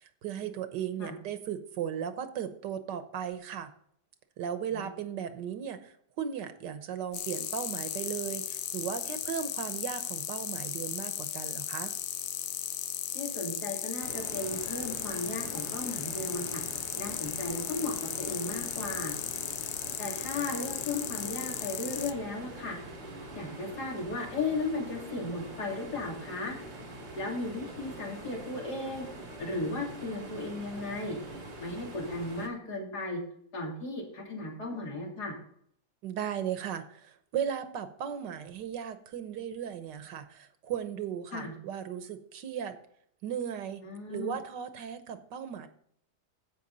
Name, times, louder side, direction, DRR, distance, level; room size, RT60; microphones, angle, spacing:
voice 1, 0.0-3.7 4.4-11.9 36.0-42.8 43.2-43.8 44.1-45.7, right 8 dB, 85° right, 10 dB, 1.6 m, -36 dB
sound 1, 7.1-22.1, left 10 dB, 90° left, 1.4 m, -36 dB
voice 2, 13.1-16.6 17.0-19.2 20.0-22.8 23.3-26.6 27.1-29.1 29.4-31.2 31.6-33.2 33.5-35.3 41.3-41.5 43.8-44.3, left 2 dB, 70° left, -2 dB, 3.4 m, -35 dB
sound 2, 14.0-32.5, right 1 dB, 65° right, 2.8 m, -44 dB
15.5 x 5.6 x 4.0 m, 0.68 s
omnidirectional pair, 1.8 m